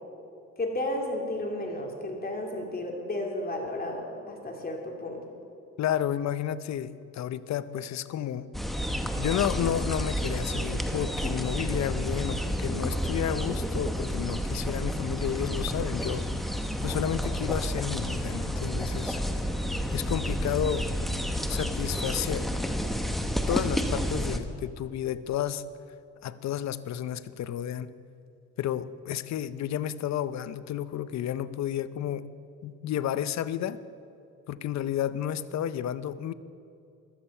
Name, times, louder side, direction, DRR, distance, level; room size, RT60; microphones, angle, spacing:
voice 1, 0.6-5.2, left 1 dB, 30° left, 1 dB, 3.0 m, -33 dB
voice 2, 5.8-8.5 9.2-16.3 16.8-19.2 19.9-20.9 21.5-22.5 23.5-25.6 26.2-27.9 28.6-32.3 32.6-33.8 34.5-36.3, left 10 dB, 65° left, 15 dB, 0.7 m, -31 dB
sound 1, 8.5-24.4, equal, ahead, 1.2 m, -30 dB
15.0 x 13.5 x 5.6 m, 2.6 s
cardioid pair, 90°, 30 cm